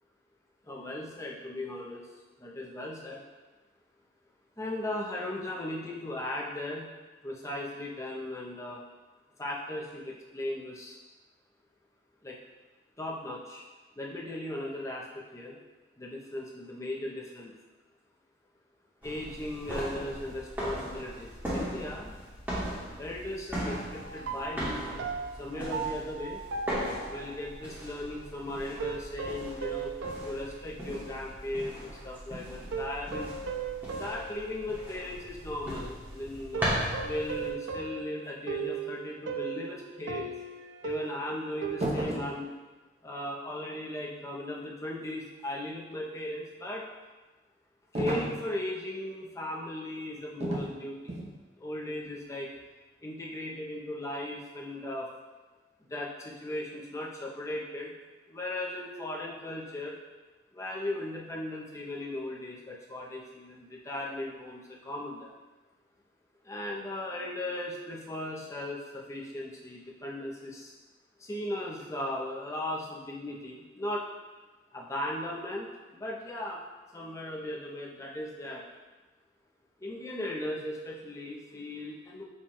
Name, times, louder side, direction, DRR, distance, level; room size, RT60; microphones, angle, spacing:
voice 1, 0.6-2.1 2.4-3.2 4.6-6.9 7.2-8.8 9.4-11.0 12.2-12.4 13.0-13.7 14.0-15.6 16.0-17.5 19.0-22.1 23.0-25.1 25.4-26.4 27.1-29.9 30.2-33.3 34.0-36.7 37.0-40.3 40.8-42.5 43.0-46.8 47.9-51.2 51.6-52.5 53.0-55.1 55.9-57.9 58.3-60.0 60.5-65.3 66.4-70.7 71.2-74.1 74.7-76.6 76.9-78.6 79.8-82.2, left 1 dB, 15° left, -3 dB, 0.6 m, -37 dB
sound 1, 19.0-37.5, equal, 10° right, 0.9 m, -38 dB
sound 2, 23.7-27.5 28.8-31.4 31.8-31.9 32.7-35.2 36.5-41.8, right 5 dB, 80° right, 0.4 m, -38 dB
sound 3, 41.8-42.4 47.9-48.5 50.4-50.7 51.1-51.4, right 1 dB, 35° right, 0.6 m, -32 dB
4.2 x 2.3 x 4.6 m, 1.2 s
head